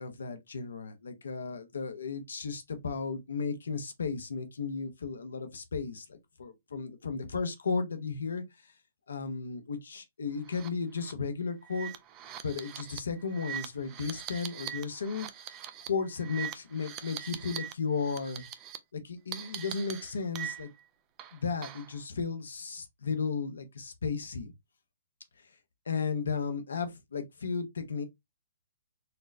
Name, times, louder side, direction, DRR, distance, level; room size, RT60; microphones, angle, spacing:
voice 1, 0.0-8.4 9.1-11.9 12.4-15.3 15.9-18.4 18.9-20.7 21.3-24.5 25.9-28.0, left 5 dB, 80° left, 0.8 m, -34 dB
sound 1, 10.5-10.7 11.0-11.1 11.6-17.7 18.0-18.8 19.3-20.8 21.2-21.9, right 10 dB, 30° right, 0.5 m, -42 dB
4.2 x 2.1 x 2.6 m
hypercardioid pair, 130°, 0 cm